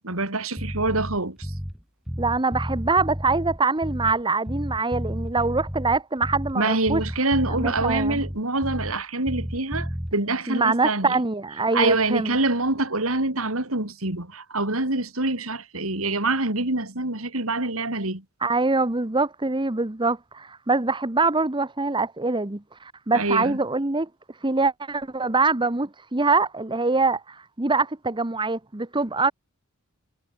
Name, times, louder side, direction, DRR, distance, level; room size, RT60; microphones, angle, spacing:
voice 1, 0.0-1.5 6.5-11.2 11.7-18.2 23.1-23.6, right 2 dB, 80° right, 4.8 m, -25 dB
Bass guitar, 0.6-4.2 4.5-6.6 6.9-9.0 9.3-10.1, equal, ahead, 3.4 m, -32 dB
voice 2, 2.2-7.0 7.5-8.2 10.5-12.4 18.4-24.1 24.4-29.3, right 3 dB, 25° right, 1.2 m, -24 dB
head